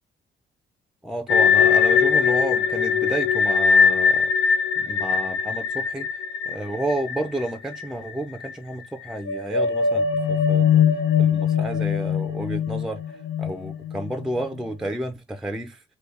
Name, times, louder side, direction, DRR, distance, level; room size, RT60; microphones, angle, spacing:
voice 1, 1.0-4.3 4.8-10.8 11.2-13.0 13.4-15.8, right 1 dB, ahead, 0.4 m, -31 dB
sound 1, 1.3-8.1 8.4-8.5 9.1-14.4, left 6 dB, 80° left, 0.5 m, -21 dB
3.3 x 2.2 x 3.4 m
cardioid pair, 90°, 20 cm